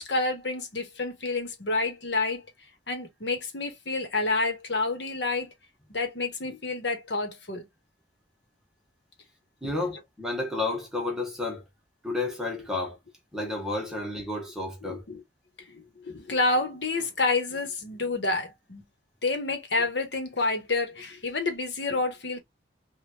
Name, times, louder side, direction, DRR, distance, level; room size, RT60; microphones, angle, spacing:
voice 1, 0.0-2.4 2.9-5.5 5.9-7.7 9.6-9.7 14.8-15.2 15.6-18.8 19.2-22.4, left 3 dB, 70° left, 1.2 m, -29 dB
voice 2, 9.6-11.6 12.0-13.0 13.3-15.0, left 2 dB, 5° right, 1.1 m, -31 dB
3.3 x 2.5 x 2.8 m
head